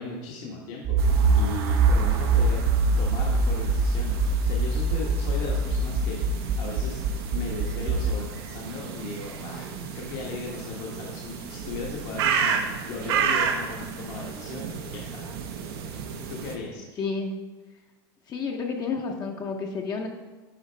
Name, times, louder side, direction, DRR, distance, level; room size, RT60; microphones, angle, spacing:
voice 1, 0.0-2.6 3.0-7.0 7.3-9.7 9.9-15.3 16.3-16.9, left 3 dB, 60° left, -2 dB, 1.3 m, -37 dB
Accelerating revving vroom, 0.8-8.1, right 3 dB, 55° right, 1.1 m, -23 dB
sound 1, 1.0-16.6, right 6 dB, 85° right, 0.9 m, -33 dB
voice 2, 17.0-17.3 18.3-20.1, left 4 dB, 30° left, 2 dB, 0.7 m, -30 dB
10.5 x 4.1 x 4.5 m, 1.2 s
supercardioid pair, 135°, 13 cm